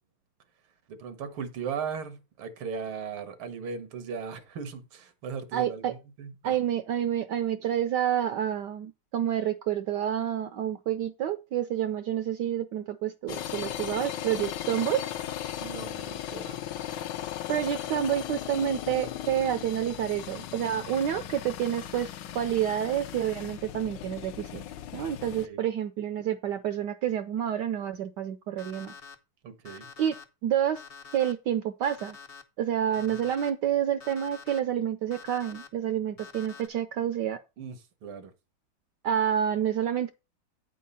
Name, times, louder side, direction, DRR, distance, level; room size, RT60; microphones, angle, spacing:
voice 1, 0.9-6.6 15.6-16.6 21.1-21.2 25.4-25.6 29.4-29.9 33.1-33.2 37.6-38.3, right 6 dB, 85° right, 2.1 m, -38 dB
voice 2, 5.5-5.9 6.4-15.0 17.5-22.1 22.3-24.6 24.9-28.9 30.0-30.2 30.4-30.8 31.1-32.2 32.6-37.4 39.0-40.1, right 10 dB, 70° right, 1.1 m, -28 dB
sound 1, 13.3-25.5, left 11 dB, 70° left, 1.2 m, -37 dB
Alarm, 28.6-29.2 29.7-30.2 30.8-31.3 31.8-32.4 32.9-33.5 34.0-34.6 35.1-35.7 36.2-36.7, left 6 dB, 50° left, 0.7 m, -46 dB
9.0 x 4.7 x 5.4 m
omnidirectional pair, 2.2 m